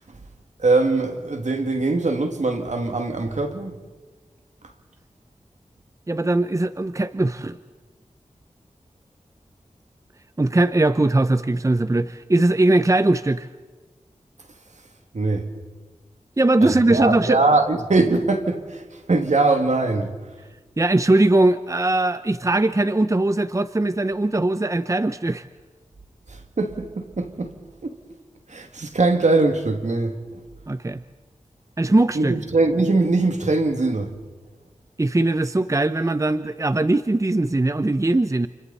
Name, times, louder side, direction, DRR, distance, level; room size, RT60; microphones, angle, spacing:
voice 1, 0.6-3.8 15.1-15.5 16.6-20.2 26.3-27.5 27.8-28.0 28.5-30.4 32.1-34.2, right 3 dB, 70° right, 2.3 m, -22 dB
voice 2, 6.1-7.6 10.4-13.5 16.4-17.4 20.8-25.4 30.7-31.0 31.8-32.3 35.0-38.5, right 2 dB, 25° right, 0.7 m, -20 dB
29.0 x 28.5 x 4.2 m
cardioid pair, 45°, 13 cm